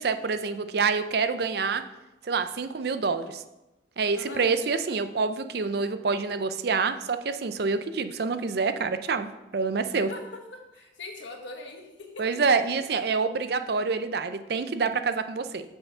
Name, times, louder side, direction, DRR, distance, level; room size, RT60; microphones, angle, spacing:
voice 1, 0.0-1.8 2.2-3.4 4.0-9.3 9.5-10.1 12.2-15.6, right 4 dB, 55° right, 10 dB, 0.5 m, -27 dB
voice 2, 4.1-4.5 10.1-10.2 10.5-12.1 12.7-12.8, left 2 dB, 75° left, 2 dB, 1.4 m, -41 dB
7.0 x 5.6 x 5.5 m, 1.0 s
head